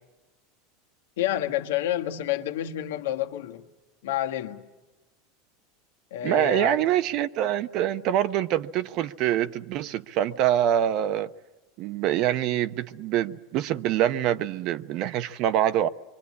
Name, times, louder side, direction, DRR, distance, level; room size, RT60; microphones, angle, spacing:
voice 1, 1.2-3.6 4.0-4.6 6.1-6.8, left 12 dB, 85° left, 1.6 m, -29 dB
voice 2, 6.2-11.3 11.8-15.9, right 11 dB, 50° right, 0.8 m, -25 dB
26.5 x 24.0 x 8.5 m
supercardioid pair, 140°, 0 cm